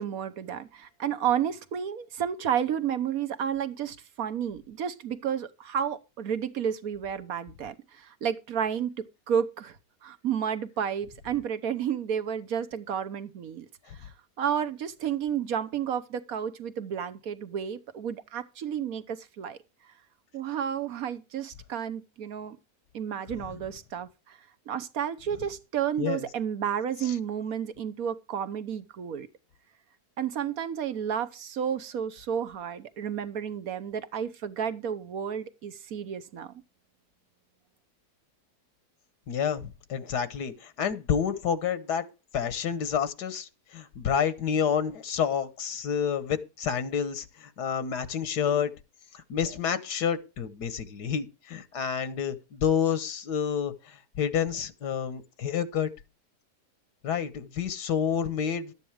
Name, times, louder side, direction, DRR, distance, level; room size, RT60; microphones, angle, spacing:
voice 1, 0.0-9.8 10.0-13.7 14.4-19.6 20.3-22.6 22.9-24.4 24.7-29.3 30.2-36.5, right 8 dB, 65° right, 1.4 m, -31 dB
voice 2, 39.3-42.0 42.3-48.7 49.1-55.9 57.0-58.7, left 8 dB, 90° left, 1.7 m, -29 dB
12.5 x 9.1 x 4.8 m
omnidirectional pair, 1.7 m